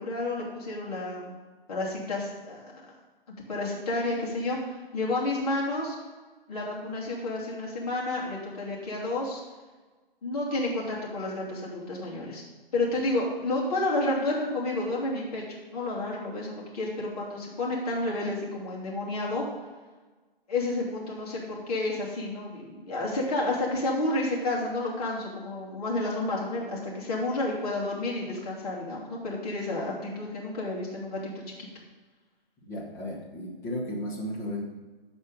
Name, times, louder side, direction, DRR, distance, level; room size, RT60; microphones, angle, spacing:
voice 1, 0.0-1.4 1.7-2.9 3.5-5.9 6.5-9.4 10.2-12.4 12.7-19.4 20.5-31.3 31.6-31.7, left 2 dB, 40° left, -5 dB, 2.9 m, -30 dB
voice 2, 32.7-34.6, left 1 dB, 10° left, -3 dB, 0.9 m, -34 dB
13.0 x 4.4 x 5.4 m, 1.3 s
figure-of-eight pair, 140°, 30 cm